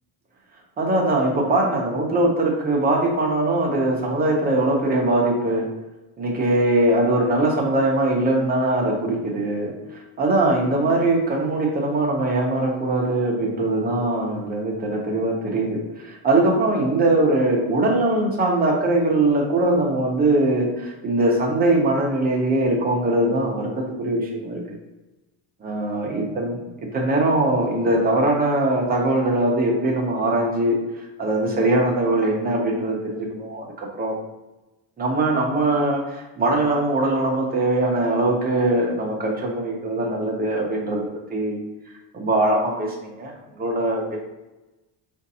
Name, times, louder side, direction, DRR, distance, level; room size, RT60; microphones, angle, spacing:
voice 1, 0.8-5.7 6.2-9.7 10.2-24.6 25.6-26.6 26.9-30.8 31.2-34.2 35.0-41.6 42.1-44.2, right 2 dB, 20° right, -2 dB, 0.7 m, -21 dB
5.0 x 2.5 x 2.7 m, 1.0 s
cardioid pair, 175°, 45 cm